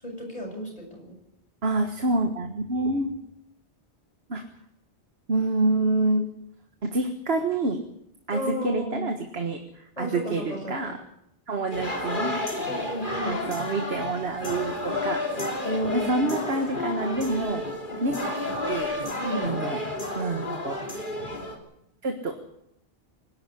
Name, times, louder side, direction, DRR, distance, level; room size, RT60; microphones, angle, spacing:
voice 1, 0.0-1.1 8.3-9.1 10.0-11.0 12.7-13.5 15.6-16.1 18.2-18.3 19.2-19.5, equal, 40° left, 1 dB, 7.3 m, -33 dB
voice 2, 1.6-3.2 4.3-4.4 5.3-6.3 6.9-7.8 8.3-11.0 11.5-12.5 13.3-15.2 15.9-17.6 18.0-18.4 18.7-18.9 19.4-19.8 20.2-20.7 22.0-22.4, right 2 dB, 80° right, 5 dB, 1.8 m, -27 dB
sound 1, 11.7-21.6, left 2 dB, 55° left, 3.3 m, -31 dB
24.5 x 12.0 x 9.9 m, 0.79 s
omnidirectional pair, 1.0 m